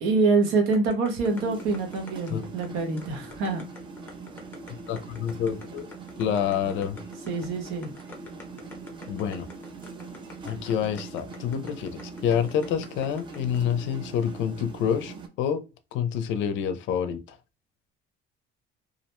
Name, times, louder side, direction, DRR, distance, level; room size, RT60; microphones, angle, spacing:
voice 1, 0.0-3.6 7.3-7.9, right 3 dB, 80° right, 0.8 m, -25 dB
sound 1, 0.7-13.6, left 3 dB, 10° left, 0.6 m, -46 dB
sound 2, 1.2-15.3, right 4 dB, 25° right, 0.3 m, -42 dB
voice 2, 4.9-5.9 6.2-7.0 9.1-9.5 10.4-11.9 12.2-15.6 15.9-17.2, left 8 dB, 65° left, 0.5 m, -27 dB
2.4 x 2.1 x 2.9 m
cardioid pair, 160°, 21 cm